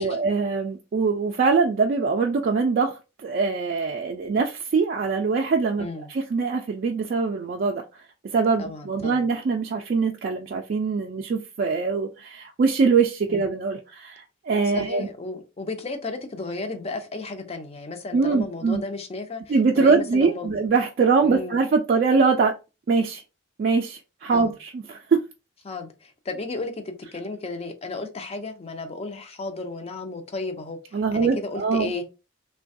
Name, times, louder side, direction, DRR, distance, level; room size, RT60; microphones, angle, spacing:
voice 1, 0.0-2.9 3.2-7.8 8.3-15.1 18.1-18.8 19.5-22.5 22.9-23.2 23.6-25.2 30.9-31.9, right 4 dB, 45° right, 0.3 m, -23 dB
voice 2, 8.6-9.2 13.3-13.5 14.6-20.5 21.2-21.6 24.3-24.5 25.6-32.0, left 3 dB, 30° left, 0.5 m, -34 dB
3.2 x 2.2 x 2.6 m
head